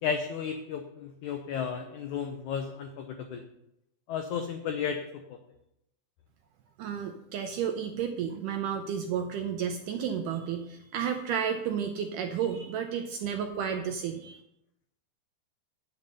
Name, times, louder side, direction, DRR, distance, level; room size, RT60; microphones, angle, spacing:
voice 1, 0.0-3.4 4.1-5.4, left 7 dB, 90° left, 5 dB, 1.7 m, -33 dB
voice 2, 6.8-14.4, right 8 dB, 80° right, 5 dB, 1.9 m, -32 dB
9.3 x 7.2 x 5.4 m, 0.81 s
omnidirectional pair, 4.4 m